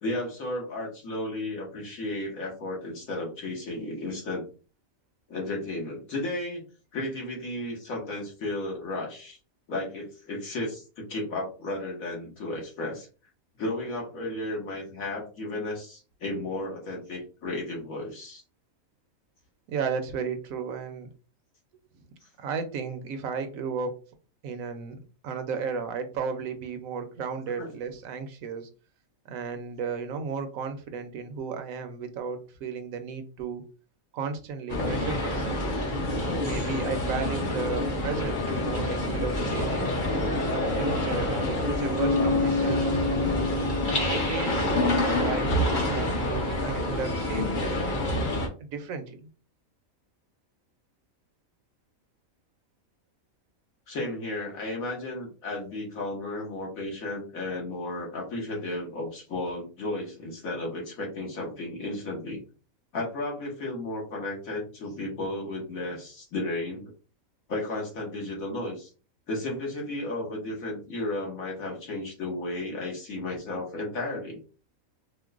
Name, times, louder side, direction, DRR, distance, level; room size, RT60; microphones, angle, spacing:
voice 1, 0.0-4.5 5.3-6.6 6.9-9.4 9.7-13.1 13.6-18.4 27.5-27.7 37.4-37.7 53.9-62.4 62.9-66.8 67.5-68.9 69.3-74.4, left 2 dB, 70° left, -1 dB, 1.6 m, -33 dB
voice 2, 19.7-21.1 22.4-24.0 24.4-25.0 25.2-28.7 29.3-33.6 34.1-35.7 36.4-39.9 40.4-42.8 43.9-47.8 48.6-49.3, right 5 dB, 75° right, 7 dB, 1.0 m, -34 dB
sound 1, 34.7-48.5, left 1 dB, 40° left, 0.9 m, -27 dB
Bass guitar, 42.0-45.6, left 3 dB, 20° left, 0.4 m, -29 dB
4.4 x 2.1 x 2.4 m, 0.35 s
omnidirectional pair, 1.5 m